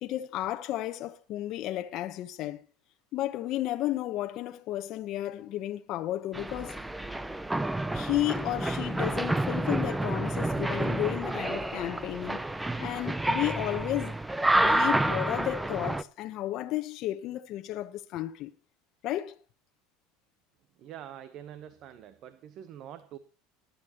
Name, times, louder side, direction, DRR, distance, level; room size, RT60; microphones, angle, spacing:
voice 1, 0.0-2.6 3.1-6.8 7.9-12.4 12.8-14.1 14.5-18.5 19.0-19.3, left 14 dB, 45° left, 1.0 m, -33 dB
sound 1, 6.3-16.0, right 1 dB, 5° right, 0.5 m, -29 dB
voice 2, 20.8-23.2, right 10 dB, 45° right, 1.0 m, -45 dB
20.0 x 10.5 x 3.0 m
supercardioid pair, 150°, 0 cm